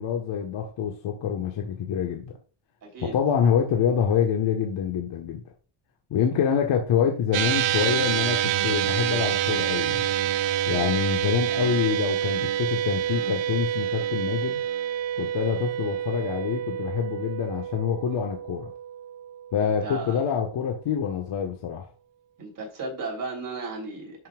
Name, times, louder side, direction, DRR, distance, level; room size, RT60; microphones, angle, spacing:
voice 1, 0.0-2.3 3.0-5.4 6.1-10.1 10.7-14.6 15.2-18.7 19.5-21.8, left 7 dB, 65° left, 1 dB, 1.5 m, -26 dB
voice 2, 2.8-3.2 19.6-20.2 22.4-24.3, right 3 dB, 45° right, -1 dB, 3.6 m, -35 dB
sound 1, 7.3-19.9, right 10 dB, 70° right, 0.8 m, -27 dB
11.0 x 5.7 x 2.5 m, 0.37 s
cardioid pair, 120°, 47 cm